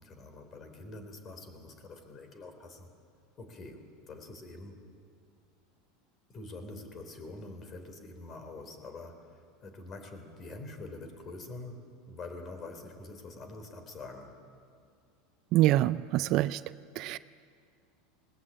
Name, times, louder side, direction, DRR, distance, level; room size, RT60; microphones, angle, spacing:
voice 1, 0.0-2.9 3.4-4.8 6.3-11.8 12.1-14.3, left 2 dB, 30° left, 7 dB, 3.6 m, -45 dB
voice 2, 15.5-16.6 17.0-17.2, right 15 dB, 50° right, 15 dB, 0.4 m, -25 dB
20.5 x 18.5 x 8.8 m, 2.3 s
supercardioid pair, 130°, 0 cm